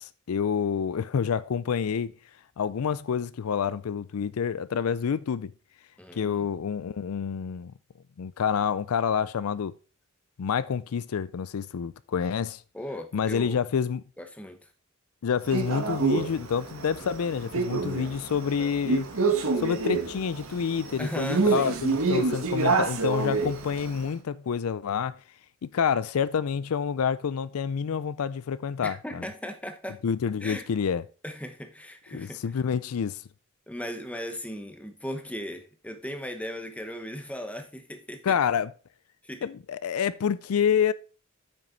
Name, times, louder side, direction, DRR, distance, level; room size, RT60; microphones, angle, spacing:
voice 1, 0.0-2.1 2.6-5.5 6.2-7.7 8.2-9.7 10.4-12.6 13.1-14.0 15.2-19.1 19.6-25.2 25.6-29.2 30.0-31.0 32.1-33.2 38.2-38.7 39.4-40.9, left 7 dB, 80° left, 0.4 m, -28 dB
voice 2, 6.0-6.5 12.7-13.6 14.2-14.7 21.0-21.8 28.8-30.0 30.4-30.7 31.2-32.6 33.7-38.4 39.2-39.5, equal, 5° left, 1.0 m, -37 dB
Male speech man speaking, 15.5-24.0, right 4 dB, 70° right, 1.5 m, -27 dB
9.0 x 6.1 x 3.9 m
head